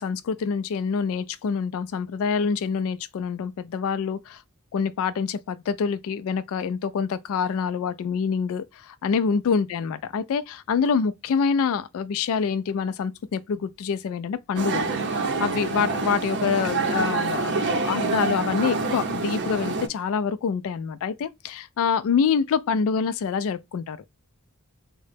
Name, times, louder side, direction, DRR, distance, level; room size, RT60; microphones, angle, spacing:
voice 1, 0.0-4.4 4.7-24.0, left 6 dB, 65° left, 0.3 m, -26 dB
sound 1, 14.6-19.9, right 3 dB, 55° right, 0.6 m, -26 dB
3.7 x 2.1 x 3.2 m
head